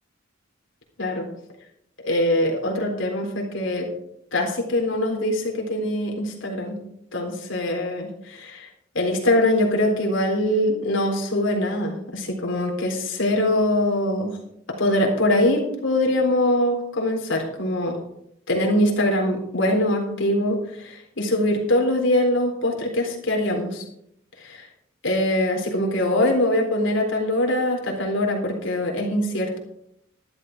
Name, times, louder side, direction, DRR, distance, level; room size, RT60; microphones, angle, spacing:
voice 1, 2.0-3.9 4.3-6.8 7.1-8.7 8.9-14.4 14.8-18.0 18.5-23.8 24.4-24.7 25.0-29.6, left 1 dB, 70° left, 0 dB, 3.8 m, -23 dB
13.0 x 12.0 x 4.6 m, 0.72 s
head